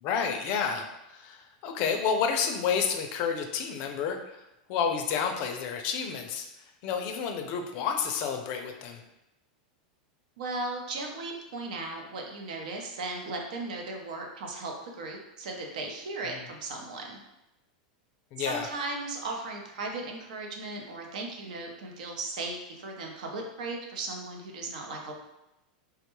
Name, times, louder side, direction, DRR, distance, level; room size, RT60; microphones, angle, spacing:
voice 1, 0.0-4.4 4.7-6.5 6.8-9.0 18.3-18.7, left 6 dB, 45° left, 4 dB, 0.4 m, -30 dB
voice 2, 10.4-17.2 18.4-25.1, right 2 dB, 80° right, 1 dB, 0.7 m, -37 dB
3.4 x 2.2 x 3.0 m, 0.91 s
supercardioid pair, 145°, 4 cm